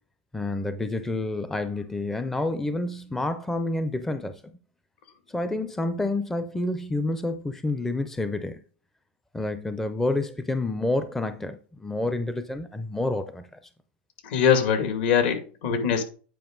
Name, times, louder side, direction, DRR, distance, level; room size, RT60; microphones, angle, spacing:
voice 1, 0.3-4.5 5.3-8.6 9.3-13.5, left 2 dB, 5° left, 0.6 m, -29 dB
voice 2, 14.2-16.0, left 7 dB, 60° left, 2.3 m, -22 dB
9.2 x 5.2 x 3.9 m
hypercardioid pair, 120°, 6 cm